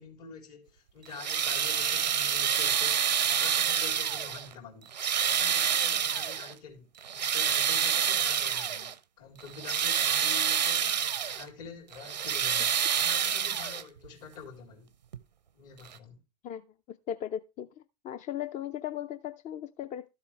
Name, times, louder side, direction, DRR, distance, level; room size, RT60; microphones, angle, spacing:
voice 1, 0.0-4.9 5.2-10.9 11.2-14.9 15.5-16.2, left 5 dB, 65° left, 3.9 m, -47 dB
sound 1, 1.1-4.5 4.9-6.5 7.0-8.9 9.4-11.4 11.9-14.1 15.1-15.2 15.9-16.0, right 8 dB, 90° right, 0.7 m, -28 dB
voice 2, 16.4-20.1, left 10 dB, 35° left, 0.6 m, -37 dB
12.5 x 7.5 x 3.3 m
hypercardioid pair, 90°, 21 cm